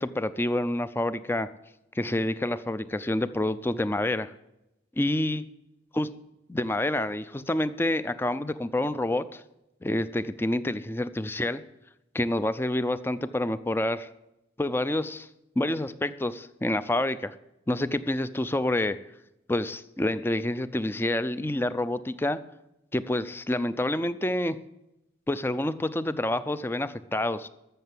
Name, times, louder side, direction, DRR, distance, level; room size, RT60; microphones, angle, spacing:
voice 1, 0.0-1.5 1.9-4.3 5.0-5.4 6.0-6.1 6.5-9.4 9.8-11.6 12.1-14.1 14.6-15.3 15.6-17.3 17.7-19.0 19.5-22.4 22.9-24.6 25.3-27.5, left 1 dB, 15° left, 14 dB, 0.4 m, -28 dB
13.5 x 6.7 x 7.7 m, 0.88 s
head